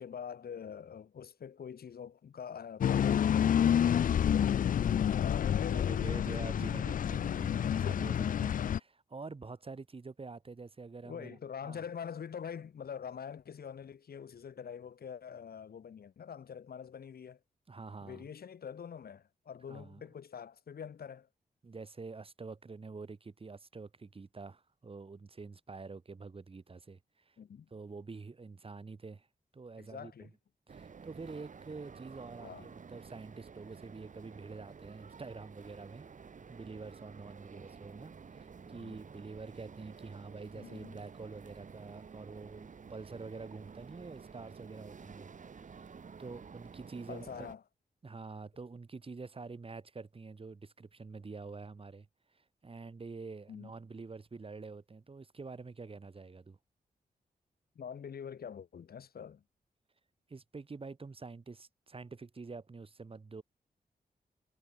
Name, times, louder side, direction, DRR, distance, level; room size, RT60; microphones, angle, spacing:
voice 1, 0.0-4.5 5.1-6.5 11.0-17.4 18.0-21.3 27.4-27.7 29.8-30.3 32.4-32.7 38.7-39.0 40.5-41.0 47.1-47.6 53.5-53.7 57.8-59.4, left 7 dB, 75° left, 2.6 m, -45 dB
sound 1, 2.8-8.8, left 9 dB, 60° left, 0.4 m, -29 dB
voice 2, 5.6-11.8 17.7-18.3 19.7-20.0 21.6-27.0 27.3-27.4 27.7-29.3 29.5-30.3 30.7-36.1 36.5-47.5 48.0-52.1 52.3-56.6 60.3-63.4, right 4 dB, 35° right, 1.9 m, -47 dB
sound 2, 30.7-47.6, right 6 dB, 55° right, 1.9 m, -51 dB
wide cardioid pair, 90°, 16 cm